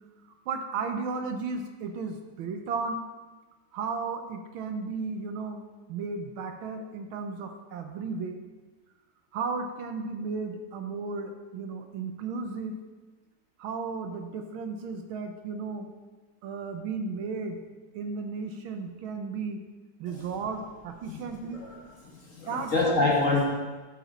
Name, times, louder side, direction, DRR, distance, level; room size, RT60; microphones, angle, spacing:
voice 1, 0.2-3.0 3.7-5.6 5.9-8.4 9.3-12.8 13.6-15.9 16.4-17.6 17.9-19.6 20.0-21.6 22.5-23.1, right 4 dB, 75° right, 6 dB, 1.6 m, -34 dB
voice 2, 21.5-23.4, left 3 dB, 40° left, -2 dB, 1.9 m, -27 dB
12.5 x 7.0 x 4.2 m, 1.3 s
omnidirectional pair, 2.3 m